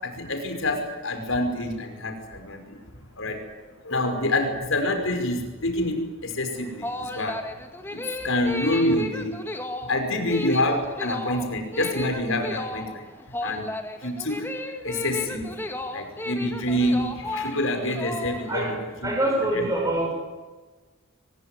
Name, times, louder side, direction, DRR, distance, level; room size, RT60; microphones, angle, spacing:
voice 1, 0.0-2.8 3.2-3.4 3.8-7.4 7.9-9.4 9.9-13.1 13.4-13.6 14.0-14.5 14.8-15.6 15.9-19.1 19.5-19.6, left 1 dB, 65° left, 4 dB, 5.6 m, -27 dB
sound 1, 6.6-18.7, left 1 dB, 10° left, 2.1 m, -34 dB
voice 2, 19.0-20.1, right 1 dB, 15° right, 0 dB, 7.1 m, -24 dB
22.5 x 20.5 x 9.5 m, 1.3 s
head